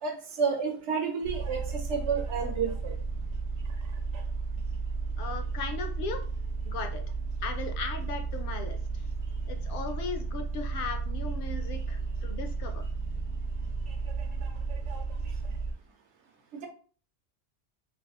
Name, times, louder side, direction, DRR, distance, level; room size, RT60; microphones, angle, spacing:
voice 1, 0.0-3.0 16.5-16.7, right 5 dB, 70° right, 3 dB, 1.0 m, -30 dB
sound 1, 1.2-15.7, right 4 dB, 55° right, 0.4 m, -33 dB
voice 2, 5.2-6.2 6.6-7.0 7.4-9.1 9.5-12.8, left 4 dB, 60° left, 6 dB, 0.6 m, -37 dB
2.7 x 2.4 x 3.5 m, 0.41 s
omnidirectional pair, 1.2 m